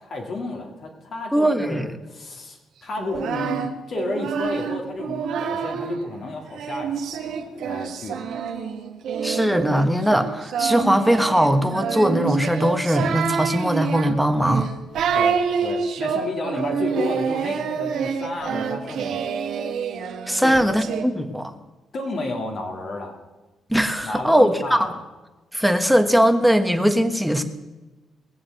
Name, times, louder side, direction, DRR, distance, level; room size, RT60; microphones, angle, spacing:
voice 1, 0.0-8.4 15.1-19.2 20.4-20.6 21.9-23.2 24.0-25.0, left 2 dB, 55° left, 1 dB, 2.2 m, -32 dB
voice 2, 1.3-1.9 9.2-14.7 20.3-21.5 23.7-24.8 25.5-27.4, equal, ahead, 7 dB, 1.3 m, -20 dB
Singing, 3.0-6.0 6.5-21.0, right 7 dB, 75° right, 1.4 m, -27 dB
19.5 x 7.3 x 7.7 m, 1.1 s
cardioid pair, 90°, 0 cm